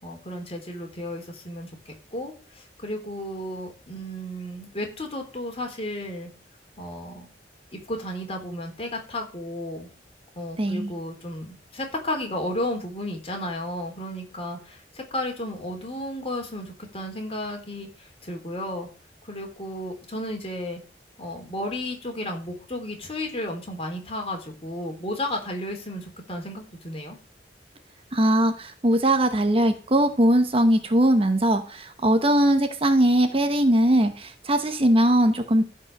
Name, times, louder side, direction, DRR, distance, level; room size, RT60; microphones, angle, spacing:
voice 1, 0.0-6.3 6.8-7.3 7.7-9.9 10.4-18.9 19.2-20.8 21.2-27.2, left 1 dB, 35° left, 2 dB, 3.8 m, -33 dB
voice 2, 10.6-10.9 28.1-35.6, right 1 dB, 35° right, 8 dB, 1.1 m, -20 dB
15.0 x 5.4 x 6.6 m, 0.36 s
head